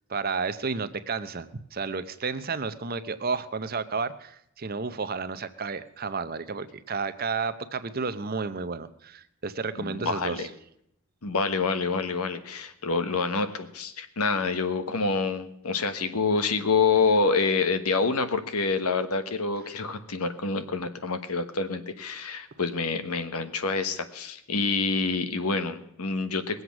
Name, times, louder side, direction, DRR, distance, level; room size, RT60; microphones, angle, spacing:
voice 1, 0.1-10.5, right 4 dB, 40° right, 12 dB, 0.7 m, -32 dB
voice 2, 9.9-10.5 11.2-26.6, left 4 dB, 85° left, 10 dB, 1.2 m, -27 dB
20.5 x 8.0 x 6.0 m, 0.74 s
head